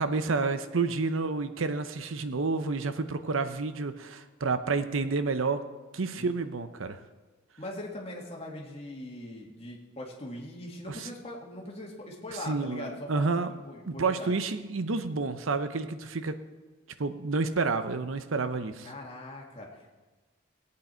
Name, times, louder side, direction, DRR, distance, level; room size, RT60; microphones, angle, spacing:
voice 1, 0.0-5.6 5.9-7.0 10.9-11.1 12.5-13.5 13.9-16.3 17.0-18.9, right 4 dB, 75° right, 10 dB, 0.7 m, -29 dB
voice 2, 7.6-14.4 18.8-19.9, left 1 dB, 30° left, -1 dB, 2.1 m, -41 dB
19.0 x 8.7 x 4.5 m, 1.3 s
head